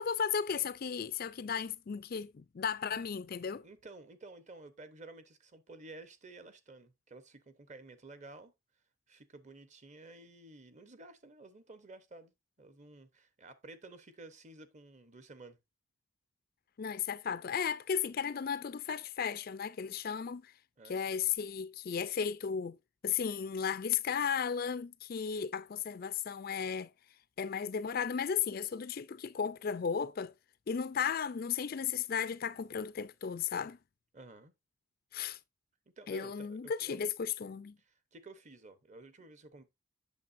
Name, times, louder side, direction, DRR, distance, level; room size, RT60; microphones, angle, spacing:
voice 1, 0.0-3.7 16.8-20.5 20.8-22.8 23.0-26.9 27.4-30.3 30.7-33.8 35.1-35.4 36.1-37.8, left 7 dB, 45° left, 0.4 m, -35 dB
voice 2, 3.6-8.5 9.1-15.6 20.8-21.1 34.1-34.5 36.0-37.0 37.8-39.6, right 2 dB, 35° right, 0.9 m, -53 dB
8.3 x 6.9 x 2.6 m
head